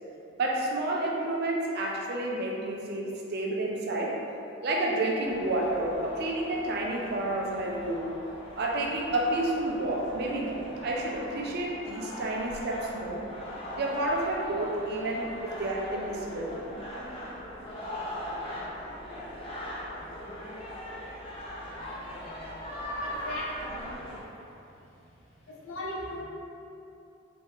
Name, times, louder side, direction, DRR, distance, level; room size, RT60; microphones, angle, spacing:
voice 1, 0.4-4.2 4.6-8.1 8.5-13.2 13.8-16.5, right 1 dB, 50° right, -1 dB, 0.4 m, -30 dB
sound 1, 5.2-24.2, equal, 25° left, 0.5 m, -40 dB
voice 2, 23.0-24.0 24.8-25.0 25.5-26.2, left 1 dB, 80° left, -5 dB, 0.6 m, -38 dB
3.5 x 2.2 x 3.1 m, 2.7 s
head